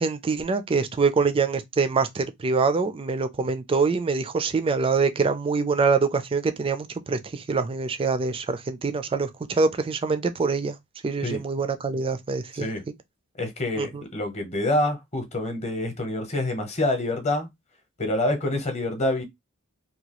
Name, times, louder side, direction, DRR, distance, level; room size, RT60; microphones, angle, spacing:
voice 1, 0.0-10.8 11.0-12.7 13.8-14.0, right 4 dB, 25° right, 0.3 m, -25 dB
voice 2, 13.4-17.5 18.0-19.2, left 1 dB, 30° left, 0.8 m, -26 dB
2.9 x 2.2 x 2.9 m
head